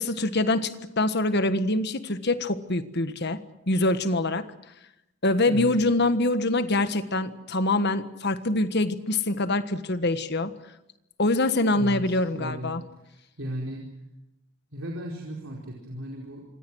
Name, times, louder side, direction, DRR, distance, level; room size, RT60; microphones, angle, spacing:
voice 1, 0.0-3.4 3.7-4.4 5.2-10.5 11.2-12.8, left 2 dB, 50° left, 11 dB, 1.5 m, -24 dB
voice 2, 11.7-12.7 13.0-13.8 14.7-16.5, equal, 65° right, -1 dB, 4.8 m, -36 dB
27.5 x 25.0 x 6.4 m, 0.87 s
head